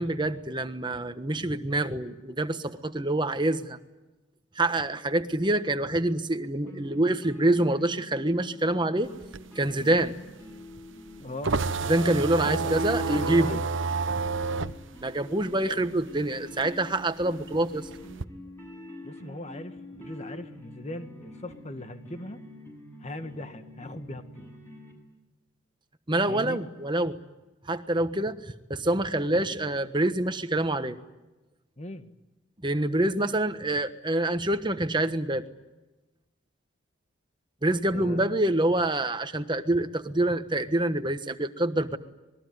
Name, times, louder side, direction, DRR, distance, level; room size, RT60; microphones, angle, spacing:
voice 1, 0.0-3.8 4.5-9.1 9.5-10.2 11.9-13.6 15.0-17.9 26.1-27.2 27.6-31.0 32.6-35.4 37.6-42.0, right 1 dB, 20° right, 9 dB, 1.3 m, -26 dB
sound 1, 6.7-24.9, left 1 dB, 10° left, 7.8 m, -46 dB
sound 2, 9.1-16.2 16.5-18.2, right 4 dB, 70° right, 0.9 m, -30 dB
voice 2, 11.2-11.5 12.4-13.7 19.0-22.4 23.0-24.5 26.3-26.6 31.8-32.1 37.9-38.3, left 1 dB, 35° left, 8 dB, 1.6 m, -39 dB
26.5 x 21.5 x 9.5 m, 1.1 s
head